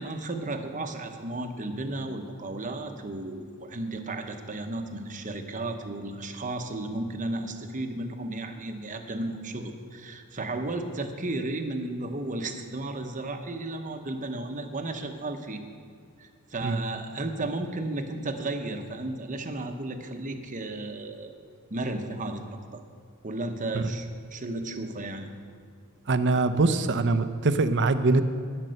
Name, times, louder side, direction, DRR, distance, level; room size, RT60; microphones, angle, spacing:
voice 1, 0.0-15.6 16.2-21.3 21.7-22.8 23.2-25.3, right 2 dB, 35° right, 6 dB, 0.9 m, -34 dB
voice 2, 26.1-28.2, right 3 dB, 55° right, 11 dB, 0.6 m, -23 dB
12.0 x 9.8 x 6.5 m, 2.2 s
head